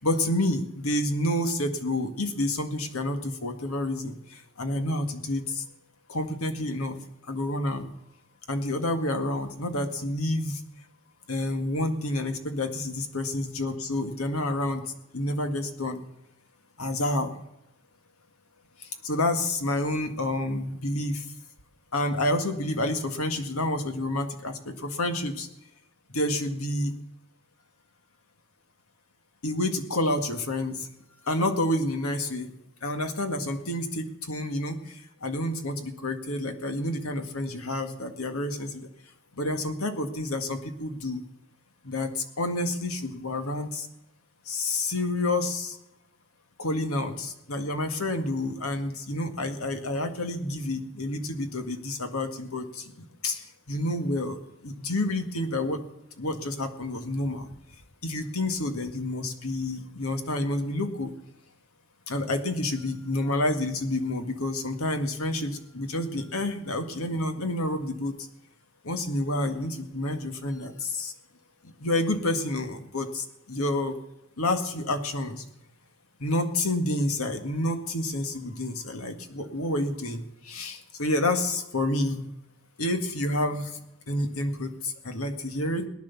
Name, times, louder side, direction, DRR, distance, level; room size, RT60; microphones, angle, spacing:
voice 1, 0.0-5.6 6.1-7.0 7.3-7.9 8.5-10.6 11.3-14.8 15.1-16.0 16.8-17.3 18.8-21.2 21.9-25.5 26.1-26.9 29.4-30.9 31.3-32.5 32.8-38.9 39.4-41.2 41.8-43.9 44.5-45.8 46.6-55.8 56.2-57.5 58.0-61.1 62.1-68.1 68.8-71.1 71.8-74.0 74.4-75.4 76.2-82.2 82.8-83.8 84.1-85.9, left 1 dB, 85° left, 7 dB, 1.9 m, -29 dB
18.0 x 10.5 x 7.0 m, 0.86 s
head